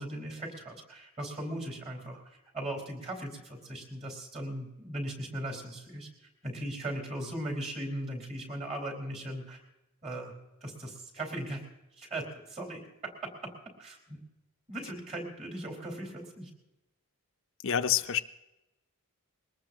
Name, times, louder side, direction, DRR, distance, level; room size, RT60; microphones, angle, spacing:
voice 1, 0.0-9.6 10.0-10.3 10.6-11.6 12.0-13.5 13.8-14.2 14.7-16.5, right 1 dB, 30° right, 2 dB, 4.4 m, -38 dB
voice 2, 17.6-18.2, left 9 dB, 60° left, 9 dB, 0.5 m, -27 dB
22.0 x 19.0 x 2.9 m, 0.98 s
head